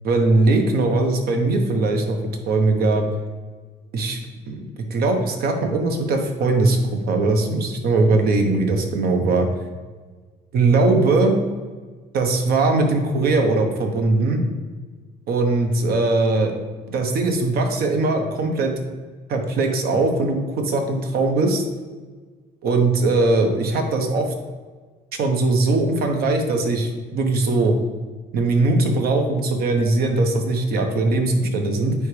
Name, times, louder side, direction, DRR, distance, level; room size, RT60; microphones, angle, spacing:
voice 1, 0.0-2.2 2.5-3.1 3.9-4.2 4.5-6.8 7.1-9.5 10.5-11.4 12.1-14.4 15.3-16.5 16.9-18.7 19.3-21.6 22.6-24.3 25.2-27.7 28.3-31.9, right 3 dB, 65° right, 4 dB, 1.1 m, -20 dB
9.1 x 3.6 x 3.3 m, 1.4 s
cardioid pair, 110°, 17 cm